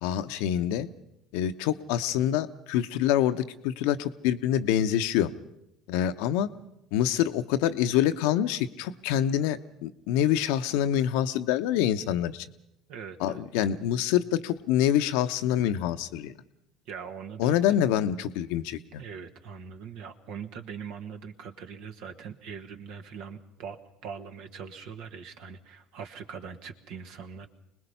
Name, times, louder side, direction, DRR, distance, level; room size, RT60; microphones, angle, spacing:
voice 1, 0.0-0.9 1.3-5.3 5.9-6.5 6.9-12.5 13.2-16.3 17.4-19.0, left 11 dB, 70° left, 10 dB, 0.8 m, -26 dB
voice 2, 12.9-13.4 16.9-17.7 18.7-23.8 24.0-27.5, right 6 dB, 65° right, 7 dB, 1.6 m, -41 dB
25.0 x 20.0 x 5.6 m, 0.84 s
hypercardioid pair, 65°, 0 cm